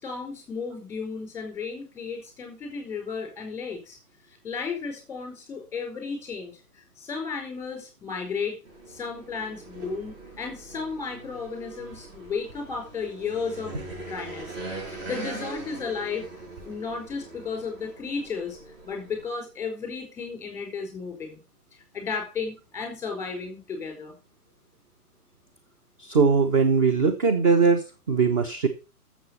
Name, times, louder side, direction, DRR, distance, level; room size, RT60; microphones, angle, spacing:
voice 1, 0.0-4.0 4.3-8.6 8.9-14.6 14.9-16.3 16.6-21.4 21.9-24.1, left 5 dB, 5° left, 3 dB, 4.2 m, -34 dB
sound 1, 8.6-19.3, right 3 dB, 40° right, 7.5 m, -41 dB
voice 2, 26.0-28.7, right 5 dB, 20° right, 6 dB, 0.9 m, -21 dB
12.5 x 7.4 x 5.5 m, 0.32 s
figure-of-eight pair, 130°, 46 cm